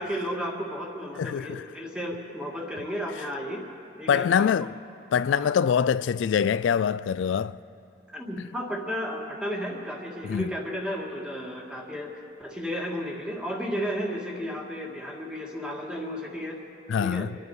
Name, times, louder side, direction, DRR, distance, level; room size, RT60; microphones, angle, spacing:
voice 1, 0.0-3.6 4.0-4.5 5.3-5.5 8.1-12.1 12.4-16.6 17.0-17.3, equal, 5° right, 1.9 m, -33 dB
voice 2, 1.2-1.6 4.1-4.8 5.1-7.6 10.2-10.5 16.9-17.4, left 7 dB, 90° left, 0.3 m, -24 dB
27.5 x 10.5 x 4.8 m
head